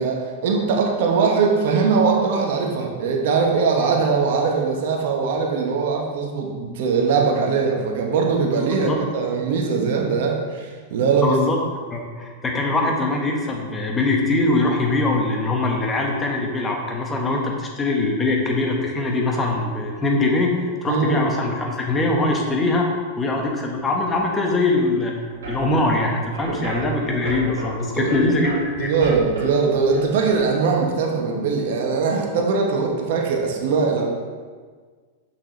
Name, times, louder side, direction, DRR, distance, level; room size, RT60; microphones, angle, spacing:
voice 1, 0.0-11.4 20.9-21.2 26.5-26.6 27.9-28.2 28.8-34.1, right 5 dB, 65° right, 0 dB, 1.0 m, -21 dB
voice 2, 8.5-9.0 11.2-11.6 11.9-22.9 23.2-25.1 25.5-28.9, left 2 dB, 20° left, 1 dB, 1.2 m, -22 dB
sound 1, 25.3-30.4, right 2 dB, 80° right, 1.7 m, -34 dB
6.2 x 6.0 x 3.2 m, 1.5 s
hypercardioid pair, 105°, 0 cm